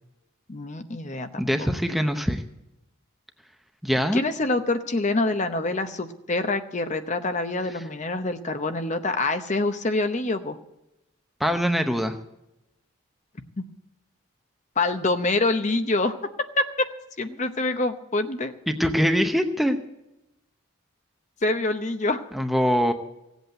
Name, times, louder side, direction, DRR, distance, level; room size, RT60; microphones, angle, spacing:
voice 1, 0.5-1.3 1.6-1.7 4.1-10.6 13.6-13.7 14.8-16.9 17.2-18.5 21.4-22.3, left 2 dB, 35° left, 8 dB, 0.8 m, -26 dB
voice 2, 1.4-2.4 3.8-4.2 11.4-12.1 18.7-19.8 22.3-22.9, equal, ahead, 6 dB, 0.8 m, -23 dB
16.5 x 8.1 x 7.8 m, 0.90 s
head